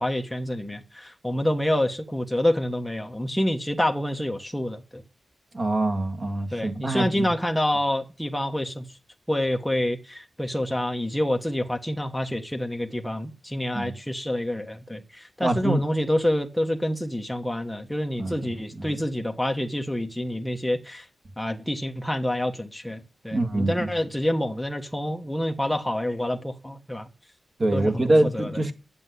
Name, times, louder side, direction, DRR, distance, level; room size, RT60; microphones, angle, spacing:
voice 1, 0.0-5.0 6.5-8.9 9.3-21.1 21.4-27.1 27.7-28.5, left 1 dB, ahead, 1.2 m, -27 dB
voice 2, 5.5-7.3 13.7-14.0 15.4-15.8 18.2-19.0 23.3-23.9 27.6-28.7, right 1 dB, 35° right, 1.9 m, -25 dB
10.0 x 7.2 x 9.5 m
wide cardioid pair, 165°, 0 cm